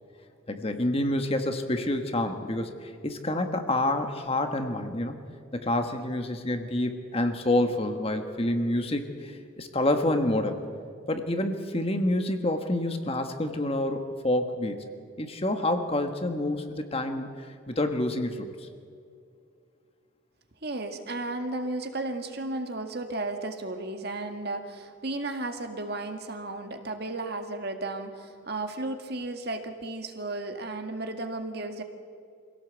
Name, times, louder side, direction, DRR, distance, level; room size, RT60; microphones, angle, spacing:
voice 1, 0.5-5.2 5.5-10.6 11.1-14.9 15.2-18.7, left 1 dB, 30° left, 6 dB, 1.4 m, -28 dB
voice 2, 20.6-31.8, right 2 dB, 50° right, 6 dB, 1.9 m, -34 dB
25.0 x 17.0 x 8.2 m, 2.4 s
head